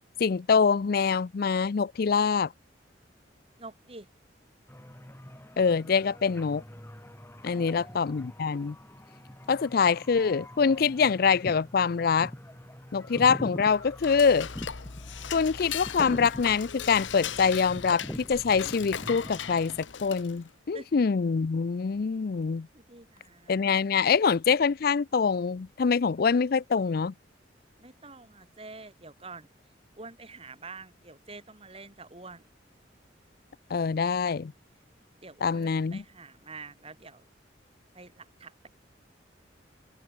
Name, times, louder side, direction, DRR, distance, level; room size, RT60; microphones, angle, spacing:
voice 1, 0.2-2.5 5.6-6.6 7.4-8.8 9.5-12.3 12.9-14.5 15.3-19.8 20.0-22.7 23.5-27.1 33.7-34.5 35.4-36.0, left 5 dB, 50° left, 0.4 m, -25 dB
voice 2, 3.6-4.1 7.4-8.1 20.7-20.9 22.7-23.8 27.8-29.5 30.0-32.5 35.2-37.3 37.9-38.7, right 3 dB, 30° right, 5.2 m, -47 dB
sound 1, 4.7-19.9, equal, 15° left, 2.2 m, -44 dB
Dishes pots and pans / Cutlery silverware, 13.7-20.5, left 7 dB, 85° left, 1.1 m, -38 dB
head